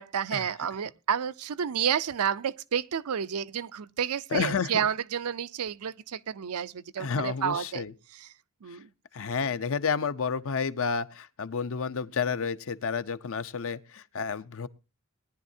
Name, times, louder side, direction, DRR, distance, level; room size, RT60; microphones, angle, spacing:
voice 1, 0.0-7.8 8.2-8.3 8.6-8.9, right 8 dB, 80° right, 0.5 m, -30 dB
voice 2, 4.3-4.9 7.0-7.9 9.1-14.7, left 5 dB, 65° left, 0.7 m, -30 dB
19.5 x 10.5 x 2.7 m
head